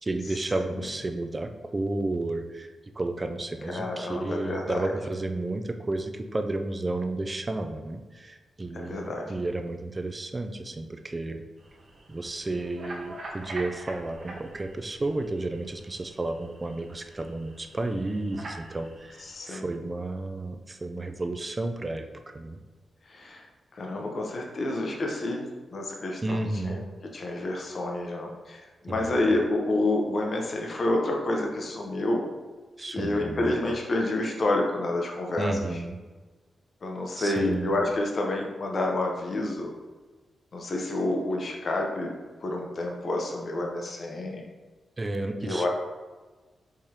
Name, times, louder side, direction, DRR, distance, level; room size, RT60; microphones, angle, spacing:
voice 1, 0.0-11.4 12.1-22.6 26.2-26.8 28.9-29.2 32.8-33.5 35.4-36.0 37.2-37.9 45.0-45.7, right 2 dB, 25° right, 6 dB, 0.4 m, -32 dB
voice 2, 3.7-4.9 8.7-9.3 19.2-19.6 23.1-23.5 23.7-26.4 26.6-26.8 27.1-32.3 32.9-35.7 36.8-39.7 40.5-42.1 42.4-44.4 45.4-45.7, left 2 dB, 50° left, 1 dB, 0.6 m, -29 dB
sound 1, 11.6-19.4, right 2 dB, 60° right, 0.9 m, -45 dB
4.7 x 3.7 x 2.8 m, 1.3 s
cardioid pair, 105°, 0 cm